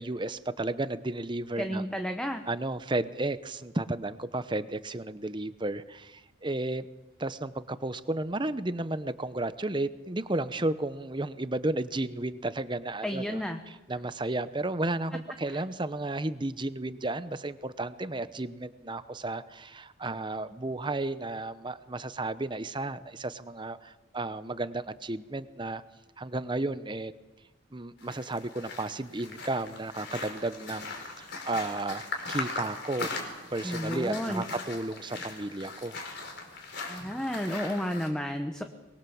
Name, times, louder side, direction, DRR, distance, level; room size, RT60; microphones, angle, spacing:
voice 1, 0.0-2.0 2.5-6.9 7.2-13.4 13.7-25.8 26.2-27.1 27.7-33.2 33.5-36.0, right 2 dB, 25° right, 13 dB, 0.9 m, -33 dB
voice 2, 1.6-2.4 13.0-13.6 33.6-34.4 36.9-38.6, equal, 5° left, 5 dB, 1.1 m, -32 dB
sound 1, 28.0-38.1, left 3 dB, 60° left, 4.8 m, -39 dB
24.0 x 22.0 x 7.2 m, 1.1 s
head